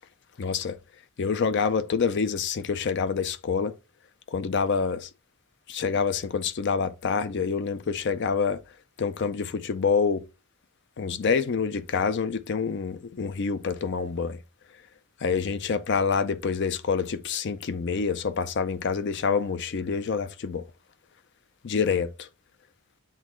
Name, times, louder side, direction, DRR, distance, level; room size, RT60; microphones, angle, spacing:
voice 1, 0.4-0.8 1.2-3.7 4.3-5.1 5.7-8.6 9.0-10.2 11.0-14.4 15.2-20.6 21.6-22.1, left 5 dB, 50° left, 0.5 m, -27 dB
8.2 x 2.7 x 4.3 m
head